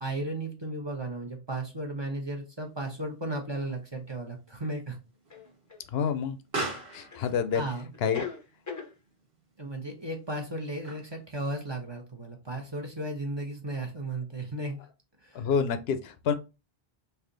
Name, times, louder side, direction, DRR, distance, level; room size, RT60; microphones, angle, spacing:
voice 1, 0.0-5.0 7.5-7.9 9.6-14.8 15.2-15.5, right 1 dB, 30° right, 0.8 m, -35 dB
Explosion, 2.4-11.3, right 2 dB, 75° right, 1.4 m, -43 dB
sound 1, 3.6-3.7 5.3-6.2 7.1-7.7 7.9-8.9, left 4 dB, 25° left, 0.5 m, -40 dB
voice 2, 5.9-6.4 6.9-7.6 8.0-8.3 15.3-16.3, left 6 dB, 75° left, 0.8 m, -27 dB
3.4 x 2.7 x 3.8 m
omnidirectional pair, 1.0 m